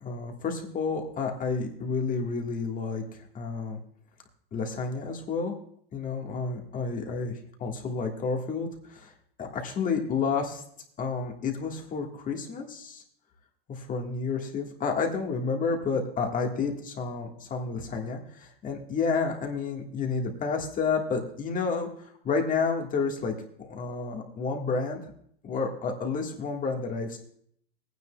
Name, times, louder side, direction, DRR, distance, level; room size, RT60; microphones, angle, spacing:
voice 1, 0.0-3.8 4.5-5.6 5.9-9.1 9.4-10.6 11.0-13.0 13.7-25.1 25.4-27.2, left 4 dB, 25° left, 3 dB, 1.6 m, -30 dB
20.0 x 9.5 x 2.3 m, 0.65 s
hypercardioid pair, 120°, 30 cm